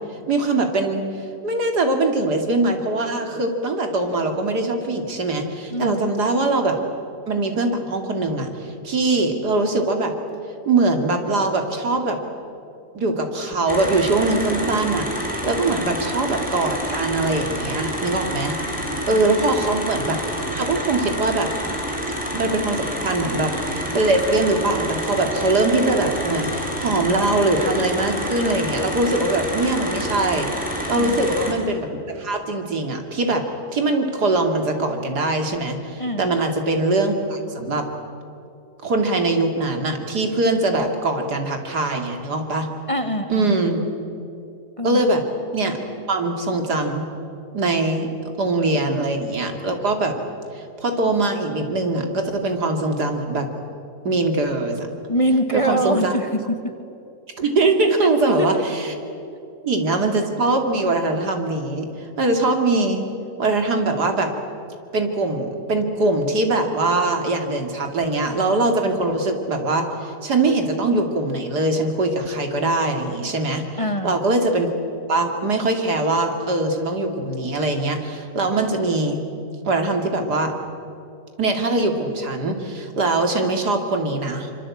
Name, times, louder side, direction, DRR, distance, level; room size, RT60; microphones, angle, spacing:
voice 1, 0.3-1.0 1.4-6.8 7.3-10.1 10.7-12.2 12.9-15.1 15.4-18.6 19.1-20.2 20.5-21.5 22.3-30.5 30.9-33.4 33.7-37.8 38.8-42.7 43.3-43.8 44.8-45.2 45.5-45.8 46.1-47.1 47.5-48.1 48.4-50.2 50.5-53.5 54.0-54.9 55.5-56.2 57.4-58.9 59.6-63.1 63.4-64.3 64.9-73.7 74.0-74.7 75.1-79.2 79.6-80.5 81.4-84.5, right 2 dB, 80° right, 4 dB, 3.2 m, -22 dB
voice 2, 5.7-6.1 30.9-31.3 36.0-36.3 42.9-43.5 44.8-45.1 55.1-56.7 58.2-58.6 73.8-74.2, equal, 20° left, 7 dB, 1.4 m, -25 dB
sound 1, 13.7-31.5, equal, 5° right, 5.1 m, -28 dB
26.0 x 25.0 x 8.6 m, 2.7 s
omnidirectional pair, 1.7 m